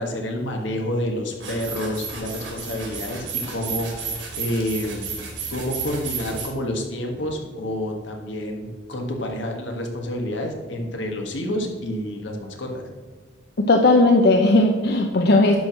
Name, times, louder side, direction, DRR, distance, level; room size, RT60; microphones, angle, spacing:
voice 1, 0.0-5.1 5.5-12.9, left 1 dB, 80° left, 2 dB, 1.6 m, -29 dB
sound 1, 1.4-6.5, right 5 dB, 80° right, 3.1 m, -32 dB
voice 2, 13.6-15.6, left 2 dB, 55° left, 3 dB, 0.7 m, -16 dB
11.0 x 4.7 x 6.2 m, 1.4 s
head